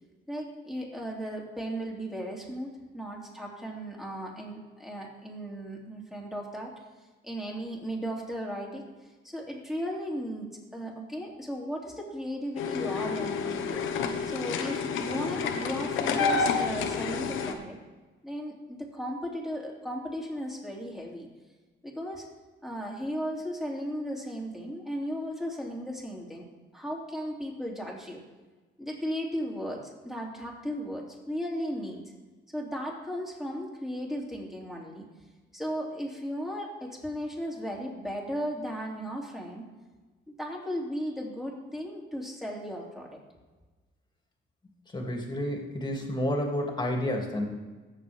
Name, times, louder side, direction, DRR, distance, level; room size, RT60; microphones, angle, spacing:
voice 1, 0.3-6.7 7.2-8.8 9.2-13.9 14.2-17.8 18.2-21.3 21.8-22.3 22.6-26.5 26.7-28.2 28.8-32.0 32.5-35.1 35.5-39.6 40.3-43.2, equal, ahead, -2 dB, 2.8 m, -36 dB
sound 1, 12.6-17.5, left 5 dB, 90° left, 1.1 m, -29 dB
voice 2, 44.9-47.4, left 1 dB, 20° left, 1 dB, 2.5 m, -30 dB
16.5 x 7.2 x 3.5 m, 1.3 s
cardioid pair, 90°, 20 cm